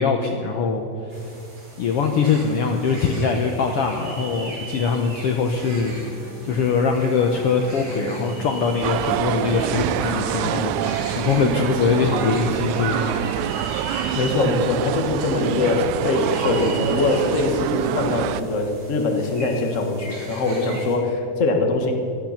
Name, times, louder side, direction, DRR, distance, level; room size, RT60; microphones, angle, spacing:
voice 1, 0.0-1.3 1.8-13.3, left 5 dB, 65° left, 4 dB, 1.5 m, -22 dB
sound 1, 1.1-21.0, right 2 dB, 60° right, 5.6 m, -38 dB
sound 2, 5.6-12.2, right 1 dB, 5° right, 2.6 m, -40 dB
sound 3, 8.8-18.4, right 11 dB, 85° right, 1.9 m, -26 dB
voice 2, 14.1-21.9, left 3 dB, 35° left, 3 dB, 1.2 m, -22 dB
18.0 x 12.5 x 5.8 m, 2.7 s
omnidirectional pair, 3.4 m